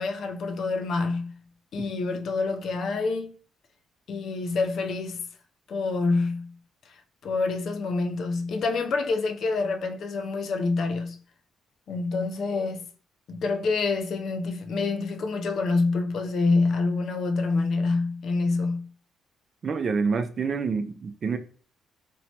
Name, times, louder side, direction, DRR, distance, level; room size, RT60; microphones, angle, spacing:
voice 1, 0.0-1.3 1.7-3.4 4.1-5.3 5.7-6.5 7.2-11.2 11.9-12.8 13.3-18.9, left 3 dB, 65° left, 0.4 m, -27 dB
voice 2, 19.6-21.4, right 5 dB, 45° right, 0.3 m, -27 dB
3.0 x 2.0 x 2.7 m
cardioid pair, 90°, 0 cm